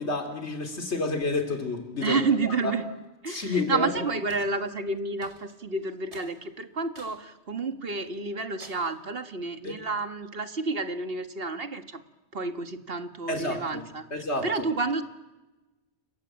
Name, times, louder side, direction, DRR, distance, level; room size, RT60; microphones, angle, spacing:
voice 1, 0.0-2.7 3.3-3.9 9.6-9.7 13.3-13.8 14.1-14.5, left 3 dB, 75° left, 5 dB, 3.4 m, -29 dB
voice 2, 2.0-2.8 3.2-12.0 12.3-14.1 14.4-15.0, right 4 dB, 60° right, 8 dB, 1.9 m, -30 dB
sound 1, 4.3-4.5 5.2-5.6 6.1-6.3 6.9-7.2 7.7-7.8 8.6-9.0, right 1 dB, 85° right, 6.1 m, -49 dB
30.0 x 22.5 x 8.8 m, 1.1 s
omnidirectional pair, 1.1 m